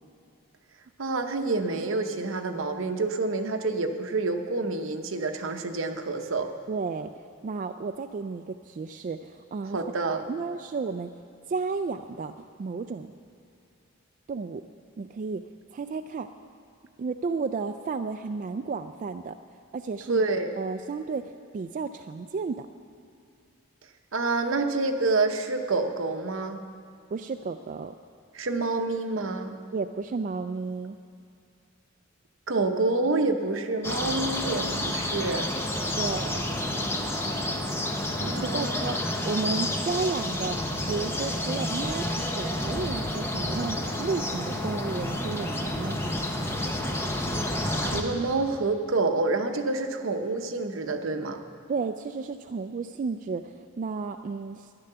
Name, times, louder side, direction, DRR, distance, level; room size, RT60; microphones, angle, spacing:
voice 1, 1.0-6.5 9.7-10.2 20.1-20.5 24.1-26.6 28.3-29.6 32.5-35.5 37.5-37.6 38.2-38.9 47.8-51.4, right 3 dB, 70° right, 6 dB, 0.9 m, -28 dB
voice 2, 6.7-9.8 10.1-11.1 11.5-13.1 14.3-14.6 15.0-15.4 15.7-16.3 17.0-19.4 19.7-20.2 20.6-22.7 27.1-27.9 29.7-31.0 36.0-36.5 38.2-46.0 51.7-54.7, right 4 dB, 40° right, 7 dB, 0.3 m, -33 dB
sound 1, 33.8-48.0, left 1 dB, 10° left, 0.9 m, -30 dB
12.0 x 10.0 x 6.7 m, 2.5 s
head